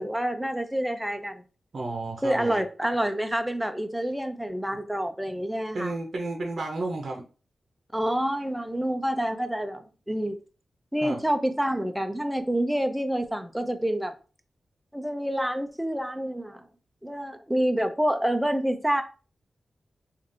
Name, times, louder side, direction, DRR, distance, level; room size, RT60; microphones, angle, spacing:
voice 1, 0.0-1.4 2.2-5.9 7.9-10.4 10.9-14.1 14.9-16.7 17.0-19.0, right 1 dB, 5° right, 0.5 m, -28 dB
voice 2, 1.7-2.6 5.7-7.2 11.0-11.2, right 2 dB, 60° right, 0.7 m, -32 dB
3.3 x 2.5 x 2.6 m
cardioid pair, 65°, 0 cm